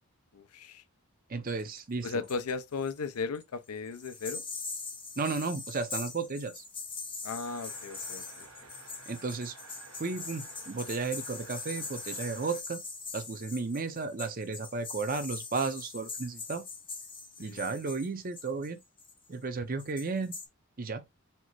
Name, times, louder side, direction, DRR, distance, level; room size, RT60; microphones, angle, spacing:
voice 1, 0.3-0.8 2.0-4.4 7.2-8.7 17.4-17.7, left 4 dB, 85° left, 0.6 m, -36 dB
voice 2, 1.3-2.2 5.2-6.6 9.1-9.5 10.0-12.8 13.1-16.6 17.4-18.8 19.3-20.4 20.8-21.0, right 4 dB, 40° right, 0.6 m, -34 dB
sound 1, 1.5-2.5 2.8-3.4 3.9-19.4 19.8-20.5, left 4 dB, 25° left, 0.8 m, -42 dB
sound 2, 7.4-12.6, right 4 dB, 70° right, 1.3 m, -53 dB
4.3 x 2.1 x 4.4 m
head